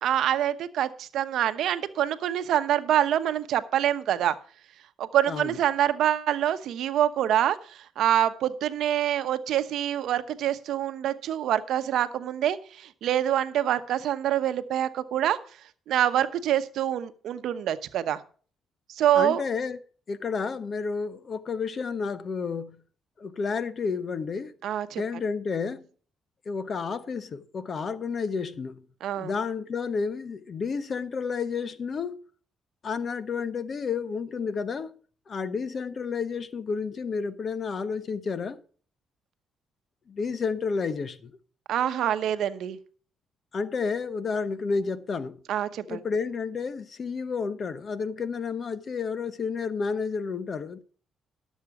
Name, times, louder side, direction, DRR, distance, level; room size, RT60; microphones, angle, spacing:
voice 1, 0.0-4.4 5.0-15.4 15.9-18.2 18.9-19.4 24.6-25.0 29.0-29.3 41.7-42.8 45.5-46.0, right 11 dB, 75° right, 0.8 m, -26 dB
voice 2, 5.3-5.6 19.1-19.8 20.1-22.8 23.2-24.5 25.0-25.9 26.5-28.8 29.2-32.2 32.8-34.9 35.3-38.6 40.1-41.3 43.5-45.4 45.9-50.8, left 5 dB, 45° left, 0.9 m, -31 dB
12.0 x 7.3 x 4.8 m
cardioid pair, 90°, 0 cm